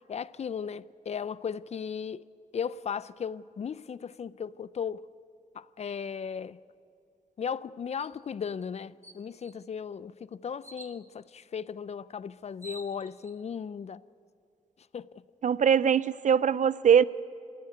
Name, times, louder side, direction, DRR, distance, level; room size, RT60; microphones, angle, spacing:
voice 1, 0.1-2.3 2.5-5.0 5.5-6.6 7.4-14.0 14.9-15.1, left 7 dB, 50° left, 0.5 m, -36 dB
sound 1, 8.0-8.2 8.6-8.7 9.0-9.6 10.6-11.0 12.1-12.2 12.5-13.3, right 2 dB, 20° right, 1.3 m, -48 dB
voice 2, 15.4-17.0, right 7 dB, 60° right, 0.5 m, -22 dB
28.5 x 15.0 x 9.4 m
wide cardioid pair, 165°, 14 cm